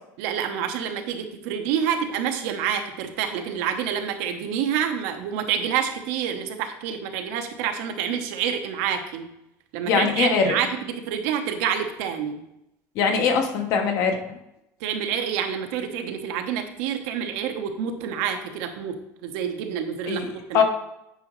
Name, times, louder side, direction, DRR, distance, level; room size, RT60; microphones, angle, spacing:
voice 1, 0.2-9.3 9.7-12.4 14.8-19.0 19.2-20.6, right 8 dB, 80° right, 5 dB, 0.9 m, -28 dB
voice 2, 9.9-10.5 12.9-14.2 20.1-20.6, left 5 dB, 50° left, 4 dB, 1.1 m, -22 dB
9.3 x 4.9 x 3.1 m, 0.85 s
cardioid pair, 160°, 7 cm